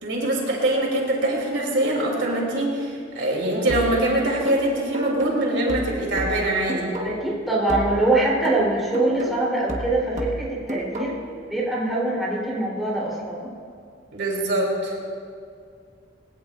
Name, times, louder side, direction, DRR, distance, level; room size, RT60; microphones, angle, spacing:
voice 1, 0.0-7.0 14.1-15.0, right 1 dB, 70° right, -2 dB, 3.2 m, -23 dB
sound 1, 3.7-7.4 7.7-11.4, equal, 40° right, 1.4 m, -32 dB
voice 2, 7.0-11.2 11.5-13.5, right 2 dB, ahead, -7 dB, 3.7 m, -23 dB
21.0 x 17.0 x 2.6 m, 2.3 s
head